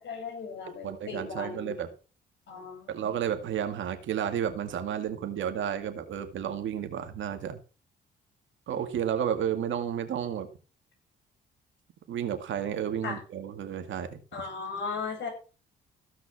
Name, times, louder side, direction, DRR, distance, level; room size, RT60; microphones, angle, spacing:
voice 1, 0.0-1.7 2.5-3.1 13.0-13.2 14.3-15.3, left 4 dB, 65° left, 3 dB, 6.5 m, -37 dB
voice 2, 0.8-1.9 2.9-7.6 8.7-10.5 12.1-14.2, right 9 dB, 75° right, 8 dB, 2.1 m, -32 dB
15.0 x 6.0 x 6.0 m, 0.35 s
cardioid pair, 90°, 20 cm